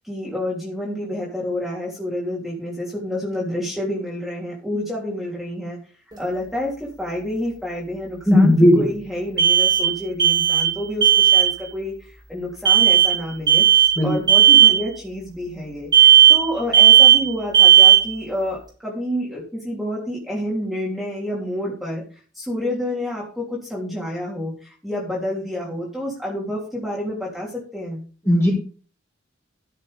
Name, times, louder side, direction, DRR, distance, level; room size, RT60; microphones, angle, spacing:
voice 1, 0.0-5.8 6.2-18.6 18.8-22.0 22.3-28.0, left 1 dB, ahead, -5 dB, 3.4 m, -29 dB
sound 1, 6.1-6.2 9.4-10.8 11.0-11.5 12.6-13.1 13.5-14.0 14.3-14.8 15.9-16.5 16.7-17.3 17.5-18.1, right 10 dB, 20° right, 5.8 m, -13 dB
voice 2, 8.3-8.8 14.0-14.1 28.3-28.5, left 1 dB, 15° left, -4 dB, 5.6 m, -14 dB
13.5 x 7.2 x 5.3 m, 0.40 s
head